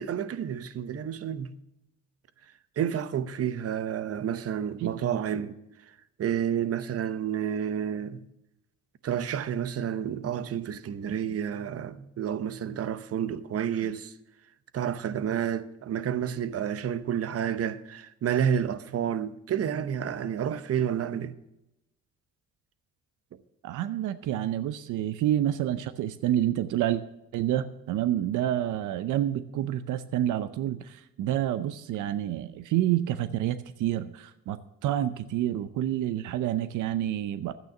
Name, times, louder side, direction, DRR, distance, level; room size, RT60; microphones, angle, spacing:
voice 1, 0.0-1.5 2.8-5.6 6.2-8.2 9.0-14.1 14.7-21.4 24.4-24.5, right 9 dB, 50° right, 0.8 m, -30 dB
voice 2, 23.6-27.0 27.3-37.5, right 12 dB, 85° right, 0.6 m, -28 dB
12.0 x 9.0 x 6.0 m
cardioid pair, 90°, 30 cm